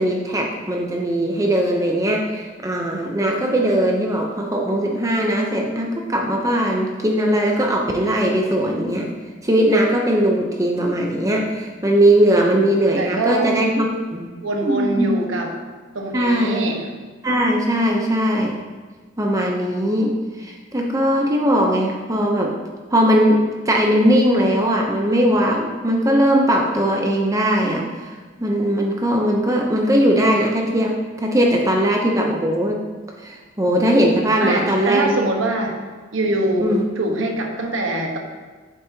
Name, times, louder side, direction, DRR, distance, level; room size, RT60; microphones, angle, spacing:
voice 1, 0.0-9.1 9.4-14.3 14.6-15.1 16.1-16.6 17.2-18.6 19.2-22.6 22.9-28.1 28.4-32.8 33.2-35.2 36.6-36.8, equal, 15° right, 0 dB, 0.7 m, -19 dB
voice 2, 13.0-13.5 14.4-15.5 15.9-16.8 34.4-35.7 36.1-38.2, right 2 dB, 80° right, 2 dB, 1.3 m, -23 dB
8.5 x 8.5 x 2.8 m, 1.4 s
head